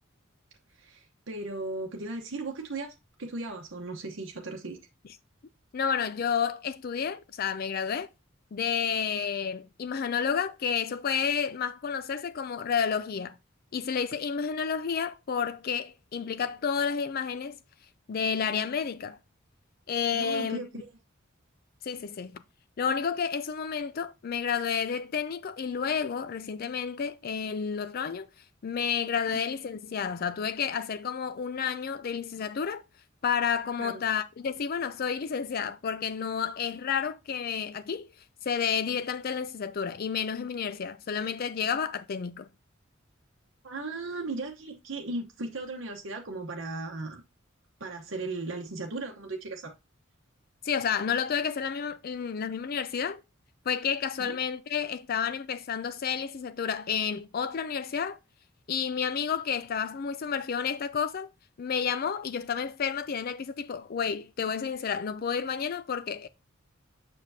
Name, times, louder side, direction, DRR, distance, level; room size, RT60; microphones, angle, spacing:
voice 1, 0.8-4.8 20.1-20.9 33.8-34.0 43.6-47.2 47.8-49.7 54.2-54.4, right 2 dB, 75° right, 0.9 m, -37 dB
voice 2, 5.7-8.1 8.5-13.4 13.7-17.6 18.1-19.2 19.9-20.7 21.8-22.4 22.8-28.3 28.6-32.8 33.2-38.1 38.4-42.5 50.6-53.2 53.7-58.2 58.7-61.3 61.6-66.3, left 7 dB, 50° left, 0.4 m, -30 dB
7.0 x 6.4 x 2.6 m
head